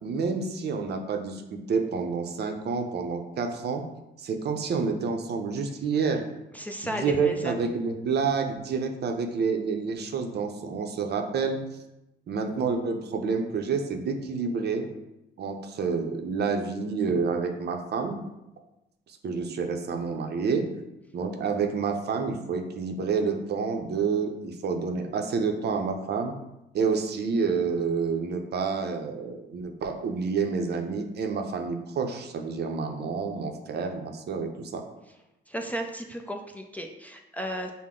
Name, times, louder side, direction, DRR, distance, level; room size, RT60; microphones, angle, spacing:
voice 1, 0.0-3.8 4.2-6.2 6.8-11.6 12.3-14.9 15.4-18.2 19.2-20.7 21.1-26.3 26.7-34.8, right 5 dB, 55° right, 4 dB, 0.6 m, -28 dB
voice 2, 6.5-7.7 35.5-37.7, equal, 5° left, 2 dB, 0.4 m, -34 dB
5.7 x 2.1 x 3.7 m, 0.93 s
cardioid pair, 90°, 20 cm